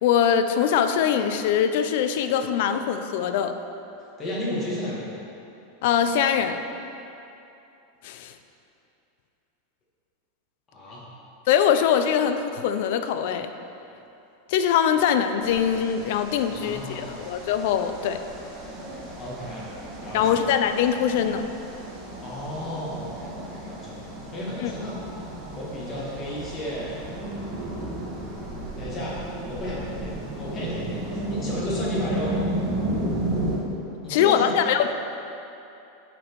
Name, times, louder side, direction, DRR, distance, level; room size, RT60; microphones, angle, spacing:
voice 1, 0.0-3.5 5.8-6.6 8.0-8.3 11.5-13.5 14.5-18.2 20.1-21.5 24.6-24.7 34.1-34.9, left 8 dB, 60° left, 9 dB, 0.4 m, -22 dB
voice 2, 4.2-5.2 10.7-11.0 16.5-17.2 19.2-19.7 20.0-20.4 22.2-25.0 25.5-27.2 28.8-29.2 29.5-32.5 34.0-34.6, left 1 dB, 20° left, -7 dB, 1.7 m, -33 dB
sound 1, 15.4-33.6, right 1 dB, 35° right, 1.5 m, -33 dB
8.8 x 4.2 x 4.6 m, 2.8 s
supercardioid pair, 155°, 0 cm